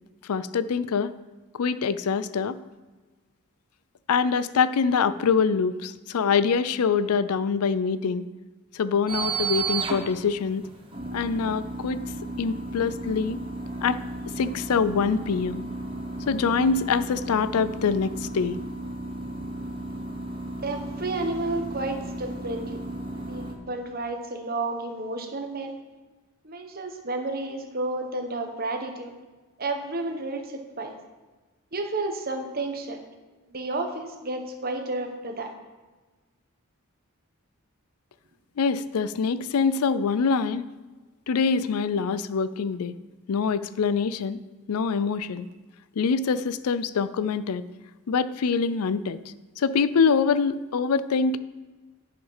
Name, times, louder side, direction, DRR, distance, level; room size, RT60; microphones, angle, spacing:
voice 1, 0.3-1.1 1.5-2.6 4.1-8.2 8.7-10.6 11.1-12.0 12.4-13.4 13.8-14.0 14.4-15.6 16.3-18.6 38.6-40.6 41.3-42.9 43.3-44.4 44.7-45.5 46.0-47.6 48.1-49.2 49.6-51.4, left 5 dB, 80° left, 14 dB, 0.4 m, -24 dB
sound 1, 9.1-23.5, right 3 dB, 25° right, 1.1 m, -34 dB
voice 2, 20.6-22.8 23.3-25.7 26.4-29.1 29.6-30.9 31.7-33.0 33.5-35.5, right 2 dB, 40° right, 5 dB, 1.1 m, -31 dB
10.5 x 5.9 x 5.6 m, 1.3 s
head